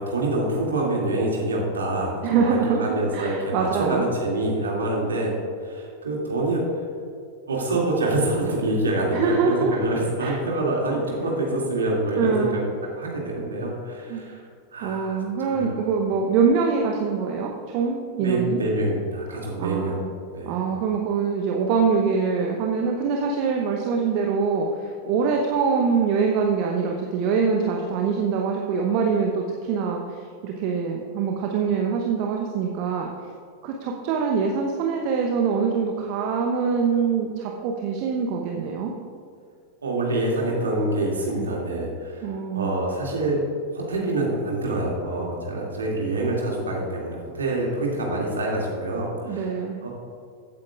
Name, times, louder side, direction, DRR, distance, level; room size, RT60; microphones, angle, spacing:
voice 1, 0.0-6.8 7.5-14.4 14.7-15.2 15.5-15.7 18.2-19.9 20.3-20.6 39.8-43.4 43.7-49.9, right 2 dB, 70° right, -2 dB, 2.3 m, -26 dB
voice 2, 2.2-4.0 9.1-9.9 10.2-10.4 12.2-12.6 14.1-14.2 14.8-18.6 19.6-20.1 20.4-33.1 33.6-38.9 41.3-41.5 42.2-42.7 49.2-49.8, right 5 dB, 45° right, 1 dB, 0.8 m, -24 dB
15.0 x 8.7 x 2.4 m, 2.2 s
figure-of-eight pair, 90°, 0 cm